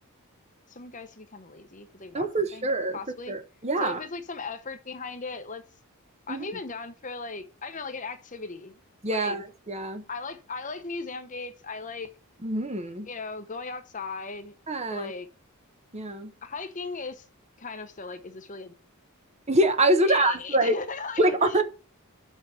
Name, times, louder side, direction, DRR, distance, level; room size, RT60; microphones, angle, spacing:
voice 1, 0.7-3.3 3.8-5.6 6.3-8.8 9.1-9.4 10.1-12.1 13.1-14.5 14.9-15.3 16.4-17.3 17.6-18.7 20.0-21.6, left 4 dB, 35° left, 0.9 m, -37 dB
voice 2, 2.1-3.0 3.3-4.0 6.3-6.5 9.0-10.0 12.4-13.1 14.7-15.1 15.9-16.3 19.5-20.8 21.2-21.6, right 1 dB, 30° right, 1.0 m, -25 dB
6.4 x 5.5 x 7.2 m
head